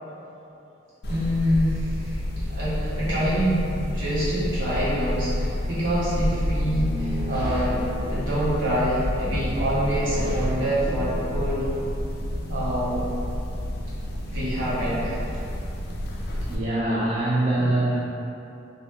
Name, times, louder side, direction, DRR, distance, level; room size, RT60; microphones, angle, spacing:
sound 1, 1.0-16.6, left 1 dB, 50° left, 0.3 m, -30 dB
voice 1, 1.1-2.2 2.5-7.8 8.1-11.7 12.5-13.1 14.3-15.2, equal, 80° right, -11 dB, 1.2 m, -26 dB
sound 2, 6.2-8.3 9.0-10.6 10.8-11.2, equal, 15° right, 0.7 m, -29 dB
voice 2, 16.5-18.0, right 1 dB, 35° right, -8 dB, 0.4 m, -23 dB
2.8 x 2.6 x 3.3 m, 2.8 s
head